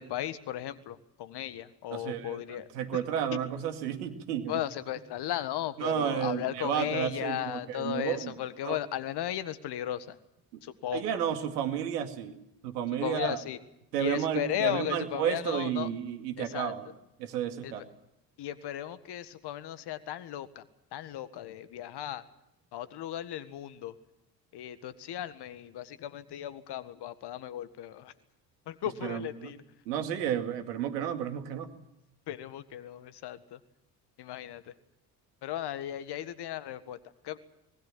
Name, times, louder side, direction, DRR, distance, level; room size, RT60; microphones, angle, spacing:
voice 1, 0.0-2.7 2.9-3.0 4.5-10.2 10.8-11.0 13.0-13.6 14.0-15.9 16.5-16.7 18.4-20.6 20.9-22.2 22.7-23.9 24.5-28.1 28.7-29.6 32.3-33.4 34.2-34.6 35.4-37.0 37.3-37.4, left 12 dB, 55° left, 14 dB, 1.7 m, -35 dB
voice 2, 1.9-4.6 5.8-8.4 8.6-8.8 10.5-10.6 10.9-12.4 12.6-13.4 13.9-16.9 17.2-17.8 29.0-29.5 29.9-31.7, right 9 dB, 75° right, 7 dB, 2.4 m, -32 dB
24.5 x 20.5 x 7.5 m, 0.85 s
hypercardioid pair, 55°, 48 cm